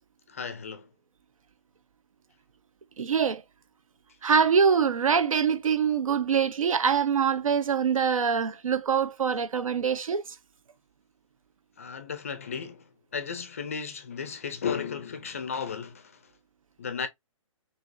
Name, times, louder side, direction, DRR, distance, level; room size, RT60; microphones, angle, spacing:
voice 1, 0.3-0.9 11.8-16.2 16.8-17.1, left 6 dB, 25° left, 0.5 m, -34 dB
voice 2, 3.0-3.4 4.2-10.2, right 6 dB, 75° right, 1.1 m, -24 dB
6.1 x 2.9 x 2.6 m
hypercardioid pair, 175°, 18 cm